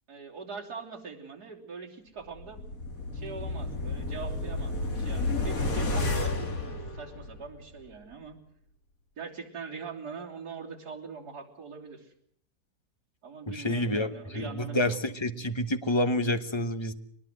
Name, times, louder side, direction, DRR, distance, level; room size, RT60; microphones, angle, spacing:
voice 1, 0.1-2.7 3.1-8.4 9.2-12.1 13.2-14.8, right 5 dB, 70° right, -1 dB, 3.8 m, -42 dB
sound 1, 2.3-7.6 7.9-8.0, left 2 dB, 55° left, 2.9 m, -31 dB
voice 2, 13.5-16.9, left 1 dB, 20° left, 10 dB, 1.0 m, -28 dB
23.0 x 20.0 x 7.8 m, 0.67 s
omnidirectional pair, 1.8 m